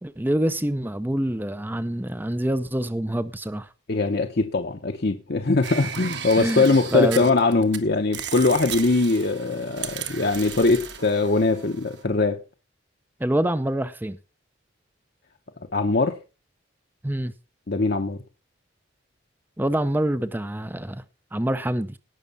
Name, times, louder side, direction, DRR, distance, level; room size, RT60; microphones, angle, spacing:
voice 1, 0.0-3.7 6.4-7.3 13.2-14.2 17.0-17.3 19.6-21.0 21.3-22.0, right 1 dB, 10° right, 0.5 m, -26 dB
voice 2, 3.9-12.4 15.7-16.2 17.7-18.2, left 3 dB, 50° left, 0.9 m, -21 dB
sound 1, 5.6-7.8 8.1-12.0, right 8 dB, 60° right, 1.6 m, -35 dB
18.0 x 6.6 x 5.4 m
head